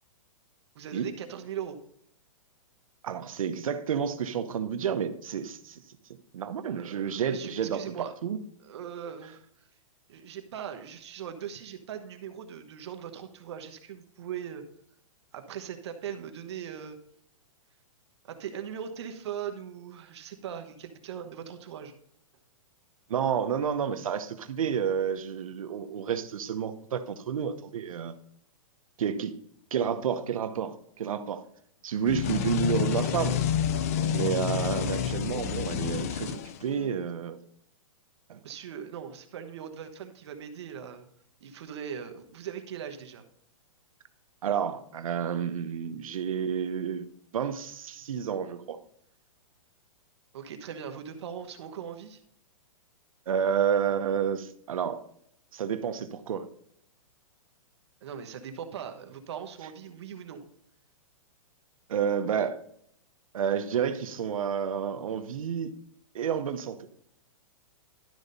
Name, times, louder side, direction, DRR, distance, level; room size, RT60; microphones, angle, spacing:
voice 1, 0.7-1.8 6.8-8.1 8.6-9.4 10.1-14.7 15.3-17.0 18.2-21.9 38.4-41.1 41.4-43.2 50.3-52.2 58.0-60.4, right 8 dB, 50° right, 6 dB, 1.1 m, -40 dB
voice 2, 3.0-5.8 6.3-7.8 8.2-8.4 23.1-28.1 29.0-29.3 29.7-31.4 31.8-33.4 34.1-37.4 38.3-38.4 44.4-47.0 47.3-48.8 53.3-55.0 55.5-56.5 61.9-62.6 63.3-65.7 66.1-66.9, right 7 dB, 80° right, 10 dB, 0.9 m, -30 dB
sound 1, 32.1-37.0, left 10 dB, 30° left, 0.4 m, -29 dB
12.0 x 4.1 x 5.2 m, 0.69 s
hypercardioid pair, 170°, 17 cm